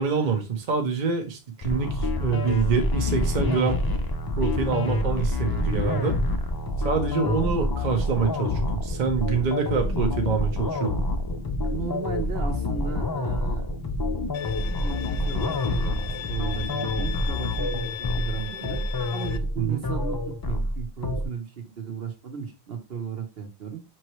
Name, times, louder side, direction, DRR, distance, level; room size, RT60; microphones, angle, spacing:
voice 1, 0.0-3.8 4.4-6.2 6.8-11.0 19.6-19.8, right 6 dB, 50° right, 4 dB, 0.8 m, -26 dB
sound 1, 1.6-21.2, left 2 dB, 35° left, 0.4 m, -27 dB
voice 2, 11.6-13.7 14.8-18.8 19.1-23.8, right 7 dB, 65° right, 4 dB, 1.1 m, -35 dB
Bowed string instrument, 14.3-19.4, left 10 dB, 80° left, 0.8 m, -37 dB
5.4 x 3.1 x 3.0 m, 0.27 s
omnidirectional pair, 1.1 m